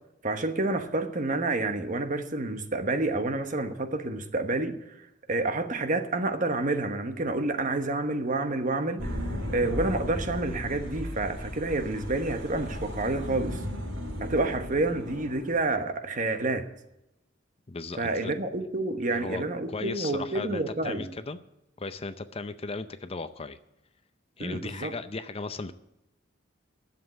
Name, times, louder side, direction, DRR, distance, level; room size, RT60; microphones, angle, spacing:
voice 1, 0.2-13.6 14.2-16.7 18.0-21.1 24.4-24.9, right 2 dB, 40° right, 7 dB, 1.2 m, -29 dB
sound 1, 9.0-15.6, left 1 dB, 70° right, 4.4 m, -36 dB
voice 2, 17.7-18.3 19.1-19.4 19.7-21.4 21.8-23.6 24.4-25.7, left 3 dB, 30° left, 11 dB, 0.6 m, -36 dB
11.5 x 7.4 x 8.8 m, 0.88 s
head